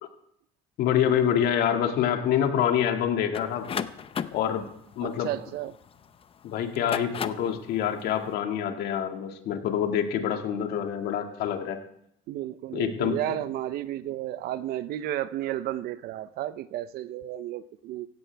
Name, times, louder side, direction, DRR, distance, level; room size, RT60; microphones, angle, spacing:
voice 1, 0.8-3.7 4.3-4.7 5.0-5.3 6.4-11.8 12.7-13.2, left 9 dB, 65° left, 5 dB, 2.0 m, -26 dB
sound 1, 3.3-6.1 6.7-7.6, left 7 dB, 30° left, 0.7 m, -34 dB
voice 2, 5.0-5.8 12.3-18.1, right 13 dB, 60° right, 15 dB, 0.7 m, -32 dB
16.5 x 16.5 x 3.5 m, 0.72 s
cardioid pair, 120°, 18 cm